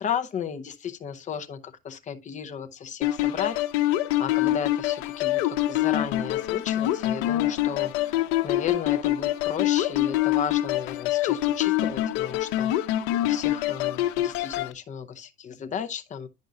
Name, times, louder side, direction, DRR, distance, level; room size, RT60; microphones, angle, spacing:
voice 1, 0.0-3.9 4.2-12.9 13.2-16.3, left 8 dB, 20° left, 0.7 m, -34 dB
sound 1, 3.0-14.7, left 14 dB, 70° left, 0.9 m, -25 dB
10.5 x 5.3 x 2.4 m
supercardioid pair, 145°, 33 cm